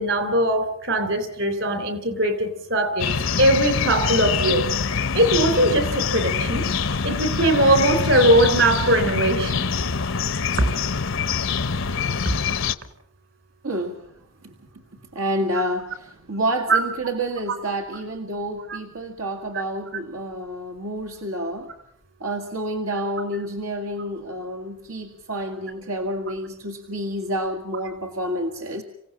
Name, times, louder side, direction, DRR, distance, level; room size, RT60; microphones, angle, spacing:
voice 1, 0.0-3.1 3.4-4.7 5.1-6.7 7.0-9.7 16.7-16.8, right 1 dB, 55° right, 10 dB, 3.4 m, -20 dB
sound 1, 3.0-12.7, left 5 dB, 60° left, 0.8 m, -25 dB
voice 2, 13.6-14.0 14.4-14.5 15.1-21.7 22.2-28.8, right 1 dB, 80° right, 4 dB, 1.9 m, -29 dB
26.5 x 16.5 x 7.4 m, 0.74 s
head